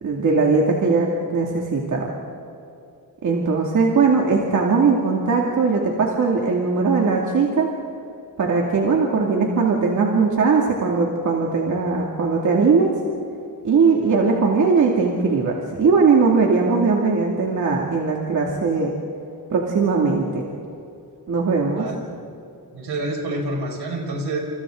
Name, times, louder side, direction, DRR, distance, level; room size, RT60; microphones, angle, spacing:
voice 1, 0.0-2.2 3.2-7.7 8.4-12.9 13.6-18.9 19.5-20.5 21.3-21.9, right 4 dB, 50° right, -1 dB, 2.4 m, -19 dB
voice 2, 21.8-22.2 22.7-24.4, right 2 dB, 75° right, 1 dB, 5.6 m, -28 dB
29.5 x 29.0 x 3.8 m, 2.7 s
wide cardioid pair, 170°, 40 cm